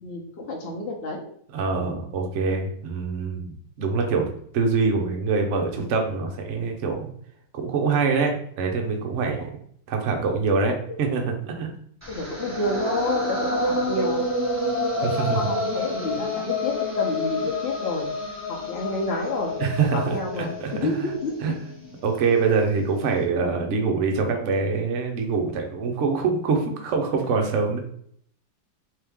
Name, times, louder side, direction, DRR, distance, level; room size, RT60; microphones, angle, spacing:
voice 1, 0.0-1.2 12.1-14.3 15.0-18.1 18.5-21.4, left 2 dB, 70° left, -1 dB, 0.5 m, -29 dB
voice 2, 1.5-4.3 4.5-7.1 7.5-9.5 9.9-11.7 15.0-15.5 19.6-21.1 21.4-21.5 22.0-27.8, right 4 dB, 70° right, 3 dB, 0.7 m, -24 dB
sound 1, 12.0-22.1, left 2 dB, 10° right, 1.1 m, -28 dB
3.3 x 3.0 x 3.4 m, 0.64 s
omnidirectional pair, 2.1 m